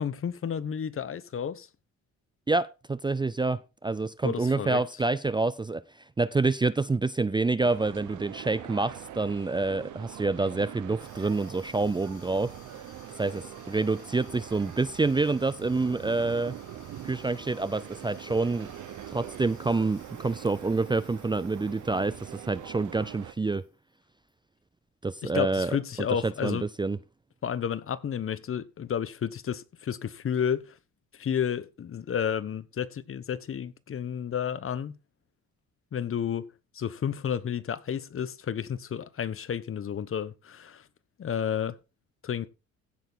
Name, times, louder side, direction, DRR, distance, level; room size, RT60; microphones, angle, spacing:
voice 1, 0.0-1.7 4.2-4.8 25.2-26.6 27.4-30.6 31.2-34.9 35.9-36.5 36.7-40.8 41.2-41.8 42.2-42.5, left 8 dB, 45° left, 1.1 m, -31 dB
voice 2, 2.5-12.5 13.2-16.5 17.0-18.7 19.1-23.6 25.0-25.8 26.2-27.0, right 3 dB, 15° right, 0.5 m, -27 dB
sound 1, 7.6-23.3, right 11 dB, 75° right, 1.3 m, -43 dB
Water tap faucet / Sink (filling or washing), 11.0-23.7 24.0-24.3 25.0-25.1 25.3-26.2, left 6 dB, 75° left, 4.4 m, -57 dB
15.5 x 6.7 x 4.0 m
cardioid pair, 90°, 30 cm